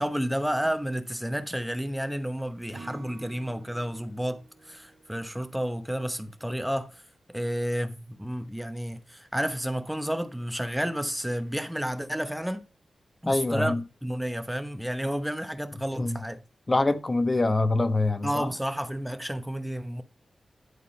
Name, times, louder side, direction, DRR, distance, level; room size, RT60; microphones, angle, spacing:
voice 1, 0.0-7.0 7.3-12.6 13.2-13.7 14.0-16.4 18.2-20.0, equal, 5° right, 0.9 m, -31 dB
Acoustic guitar / Strum, 2.7-6.0, right 3 dB, 80° right, 1.8 m, -49 dB
voice 2, 13.3-13.8 16.0-16.2 16.7-18.5, left 2 dB, 25° left, 1.1 m, -24 dB
11.5 x 3.8 x 5.2 m
wide cardioid pair, 120°, 0 cm